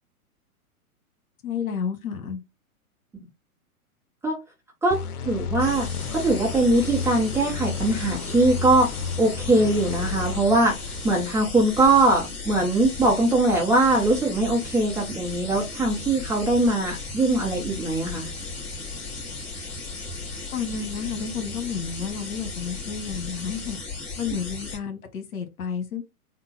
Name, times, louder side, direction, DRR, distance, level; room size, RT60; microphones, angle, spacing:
voice 1, 1.4-2.4 20.5-23.8 24.2-26.0, left 6 dB, 70° left, 1.4 m, -31 dB
voice 2, 4.8-5.9 6.1-18.3, right 2 dB, 5° right, 0.7 m, -22 dB
sound 1, 4.9-11.4, left 6 dB, 85° left, 0.7 m, -32 dB
sound 2, 5.6-24.8, left 3 dB, 25° left, 2.1 m, -36 dB
3.7 x 2.2 x 4.1 m
hypercardioid pair, 130°, 44 cm